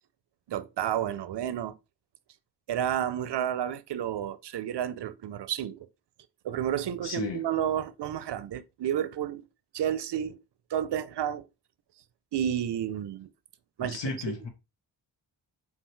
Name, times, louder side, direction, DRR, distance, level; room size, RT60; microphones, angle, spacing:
voice 1, 0.5-1.7 2.7-5.9 6.4-9.4 9.7-10.4 10.7-11.4 12.3-13.3 13.8-14.0 14.3-14.4, right 10 dB, 65° right, 0.5 m, -31 dB
voice 2, 7.0-7.4 13.8-14.5, left 4 dB, 75° left, 1.1 m, -34 dB
5.5 x 2.4 x 3.1 m
wide cardioid pair, 100°, 44 cm